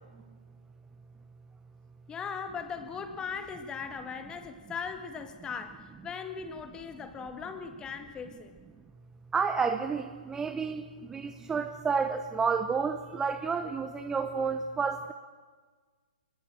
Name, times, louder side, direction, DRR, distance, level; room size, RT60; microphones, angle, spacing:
voice 1, 2.1-8.5, left 6 dB, 15° left, 8 dB, 1.8 m, -39 dB
voice 2, 9.3-10.8 11.1-15.1, right 5 dB, 10° right, 8 dB, 0.9 m, -30 dB
24.5 x 20.5 x 7.7 m, 1.5 s
figure-of-eight pair, 125°, 5 cm